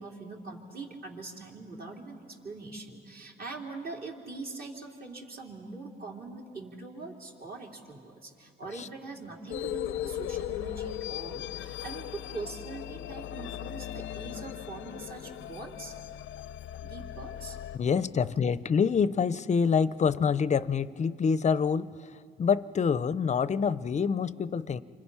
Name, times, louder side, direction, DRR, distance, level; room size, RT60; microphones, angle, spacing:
voice 1, 0.0-15.9 16.8-17.6, right 3 dB, 50° right, -1 dB, 3.6 m, -42 dB
sound 1, 9.5-17.8, left 12 dB, 80° left, 0.6 m, -38 dB
voice 2, 17.7-21.9 22.4-24.8, left 6 dB, 35° left, 16 dB, 0.6 m, -26 dB
29.5 x 25.0 x 5.7 m, 2.3 s
cardioid pair, 90°, 20 cm